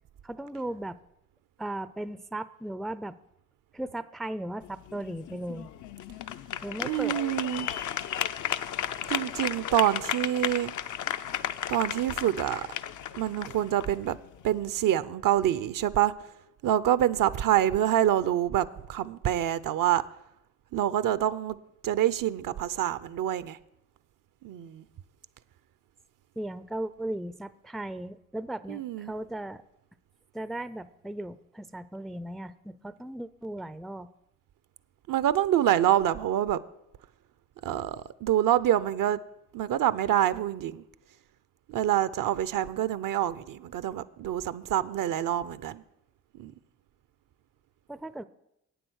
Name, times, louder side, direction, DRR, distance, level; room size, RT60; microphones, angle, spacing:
voice 1, 0.2-1.0 1.6-3.2 3.7-5.7 6.6-7.2 26.4-29.6 30.3-34.1 47.9-48.2, right 1 dB, ahead, 0.4 m, -37 dB
sound 1, 4.6-14.7, left 10 dB, 60° left, 0.5 m, -34 dB
voice 2, 6.8-7.7 9.1-10.7 11.7-12.8 13.1-14.2 14.4-16.1 16.6-20.0 20.7-21.6 21.8-23.6 24.4-24.8 28.7-29.1 35.1-36.6 37.6-39.2 39.5-40.8 41.7-45.8 46.3-46.5, right 11 dB, 65° right, 0.6 m, -26 dB
8.7 x 7.9 x 6.3 m
supercardioid pair, 55°, 35 cm